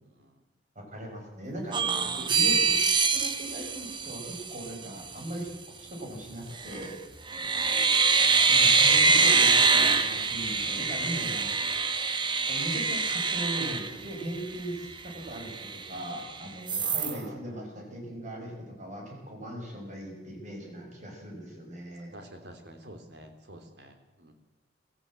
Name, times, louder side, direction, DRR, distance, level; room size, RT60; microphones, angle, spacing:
voice 1, 0.0-0.4 7.4-7.7 16.8-17.9 22.1-24.3, right 1 dB, 65° right, 5 dB, 3.2 m, -48 dB
voice 2, 0.7-2.8 3.1-5.5 5.8-6.9 8.5-11.5 12.4-22.1, right 1 dB, 45° right, 1 dB, 6.3 m, -39 dB
sound 1, 1.7-4.7 6.6-6.9 7.3-14.6 15.0-15.1 15.4-16.3 16.7-17.2, right 4 dB, 25° right, 1.1 m, -24 dB
24.0 x 14.5 x 7.7 m, 1.1 s
head